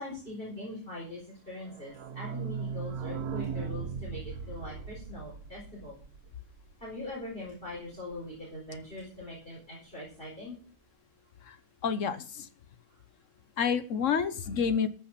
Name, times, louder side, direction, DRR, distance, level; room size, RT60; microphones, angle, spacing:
voice 1, 0.0-6.0 6.8-10.6, left 1 dB, 35° left, -5 dB, 4.5 m, -42 dB
sound 1, 1.6-7.1 7.5-7.6 7.7-7.8 8.1-8.2, right 6 dB, 75° right, 1.4 m, -38 dB
voice 2, 11.8-12.5 13.6-14.9, left 6 dB, 60° left, 12 dB, 1.2 m, -29 dB
14.0 x 6.1 x 5.9 m, 0.40 s
omnidirectional pair, 1.6 m